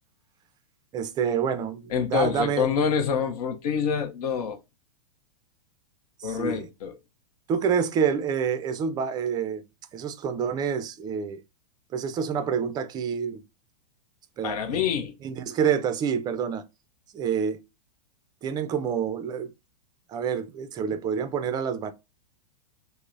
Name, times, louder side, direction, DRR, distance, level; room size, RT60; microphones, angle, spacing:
voice 1, 0.9-2.7 6.2-6.7 7.5-9.7 9.9-11.4 11.9-13.4 14.4-14.9 15.2-16.6 17.1-17.6 18.4-19.5 20.1-21.9, right 7 dB, 20° right, 0.4 m, -27 dB
voice 2, 1.9-4.6 6.2-6.9 14.4-15.1, left 7 dB, 65° left, 0.7 m, -26 dB
5.1 x 2.0 x 2.5 m
hypercardioid pair, 130°, 20 cm